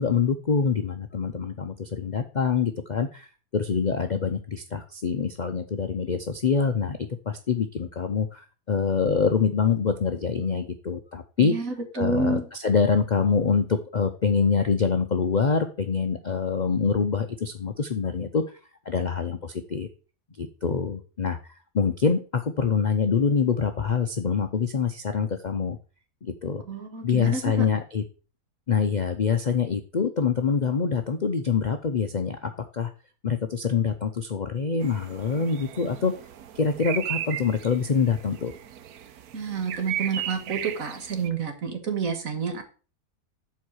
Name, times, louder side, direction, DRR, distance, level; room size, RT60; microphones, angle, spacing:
voice 1, 0.0-3.3 3.5-7.0 7.3-11.5 11.9-18.4 18.9-19.9 20.4-25.8 26.2-26.6 27.0-28.0 28.7-32.9 33.2-36.1 36.5-38.5, left 5 dB, 50° left, 7 dB, 0.5 m, -25 dB
voice 2, 11.4-12.5 26.7-27.7 39.3-42.6, right 4 dB, 65° right, 6 dB, 1.9 m, -29 dB
sound 1, 34.8-41.3, right 10 dB, 80° right, 1.3 m, -36 dB
7.4 x 4.6 x 6.2 m, 0.36 s
omnidirectional pair, 1.6 m